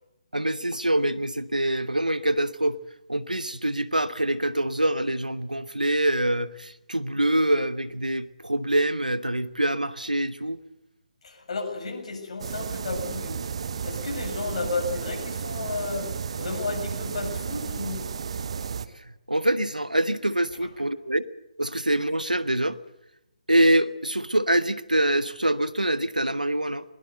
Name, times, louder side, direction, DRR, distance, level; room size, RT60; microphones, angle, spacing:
voice 1, 0.3-2.8 3.1-10.6 19.3-21.2 21.6-22.8 23.5-26.8, right 1 dB, 90° right, 14 dB, 1.2 m, -25 dB
voice 2, 11.2-13.3 13.8-18.1, left 3 dB, 50° left, 3 dB, 7.0 m, -32 dB
sound 1, 12.4-18.9, right 6 dB, 50° right, 1.4 m, -33 dB
21.5 x 21.0 x 8.0 m, 0.88 s
figure-of-eight pair, 140°, 4 cm